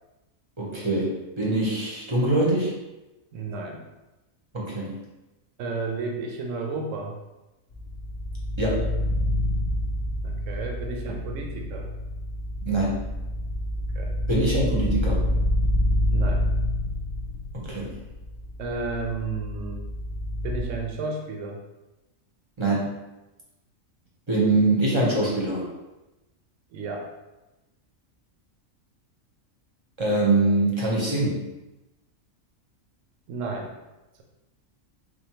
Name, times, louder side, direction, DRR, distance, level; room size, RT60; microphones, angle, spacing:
voice 1, 0.6-2.7 4.5-4.9 8.6-8.8 12.6-13.0 14.3-15.2 17.5-17.9 22.6-22.9 24.3-25.6 30.0-31.4, right 2 dB, 25° right, -4 dB, 0.7 m, -23 dB
voice 2, 3.3-3.8 5.6-7.2 10.2-11.9 13.9-14.1 16.1-16.5 18.6-19.9 20.4-21.6 26.7-27.1 33.3-33.7, right 3 dB, 70° right, 2 dB, 0.9 m, -32 dB
sound 1, 7.7-20.6, left 1 dB, 65° left, 0.4 m, -28 dB
4.3 x 2.6 x 2.9 m, 1.0 s
omnidirectional pair, 1.4 m